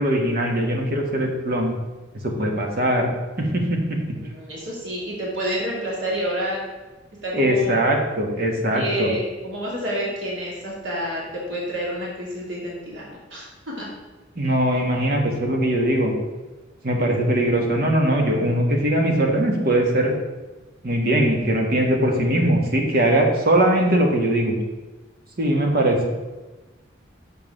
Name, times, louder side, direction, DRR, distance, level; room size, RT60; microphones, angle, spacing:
voice 1, 0.0-1.7 2.2-3.1 3.4-4.0 7.3-9.1 14.3-16.1 16.8-20.1 20.8-24.6 25.4-26.1, right 1 dB, 50° right, 1 dB, 1.4 m, -21 dB
voice 2, 4.1-6.6 7.2-7.9 8.7-13.9 14.4-14.8, equal, 75° right, -5 dB, 2.5 m, -29 dB
7.1 x 4.7 x 6.6 m, 1.2 s
head